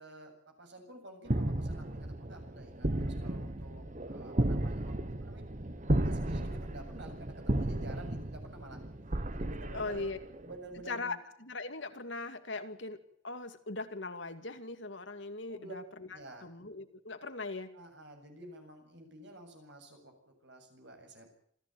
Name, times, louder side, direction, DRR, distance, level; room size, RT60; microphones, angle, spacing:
voice 1, 0.0-5.4 5.8-8.8 9.1-10.1 10.4-11.2 15.5-15.7 16.1-16.5 17.7-21.3, right 1 dB, 60° right, 4 dB, 7.7 m, -50 dB
sound 1, 1.3-10.6, right 1 dB, 40° right, 1.2 m, -34 dB
voice 2, 9.7-10.2 10.9-16.1 16.4-17.7, left 3 dB, 60° left, 9 dB, 2.4 m, -40 dB
27.5 x 15.0 x 9.4 m, 0.67 s
head